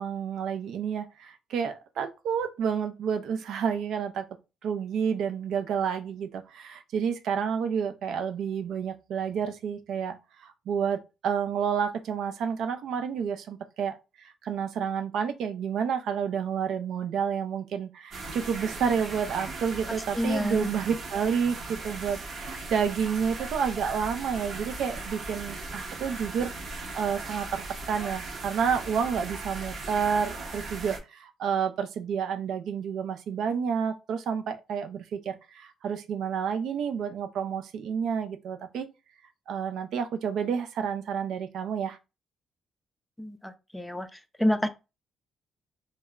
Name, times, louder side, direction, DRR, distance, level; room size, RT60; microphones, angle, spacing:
voice 1, 0.0-4.2 4.6-10.2 10.4-38.9 39.5-42.0, right 7 dB, 75° right, 0.4 m, -30 dB
sound 1, 18.1-31.0, right 3 dB, 55° right, 0.8 m, -38 dB
voice 2, 20.2-20.6 43.2-43.3 43.7-44.1 44.4-44.7, left 1 dB, 5° left, 0.4 m, -26 dB
2.1 x 2.0 x 3.5 m
cardioid pair, 90°, 0 cm